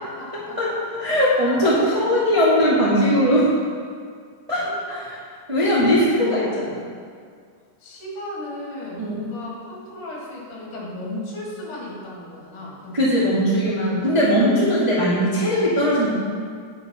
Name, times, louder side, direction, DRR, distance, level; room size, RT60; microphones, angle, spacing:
voice 1, 0.0-0.6 1.2-1.6 2.0-2.2 4.6-5.0 5.6-6.5 7.8-13.5, left 2 dB, 55° left, -5 dB, 4.1 m, -35 dB
voice 2, 0.6-3.5 4.5-5.0 5.5-6.0 6.3-6.5 9.0-9.2 12.9-16.1, equal, 15° right, -8 dB, 1.2 m, -19 dB
10.0 x 7.7 x 5.6 m, 2.1 s
omnidirectional pair, 4.3 m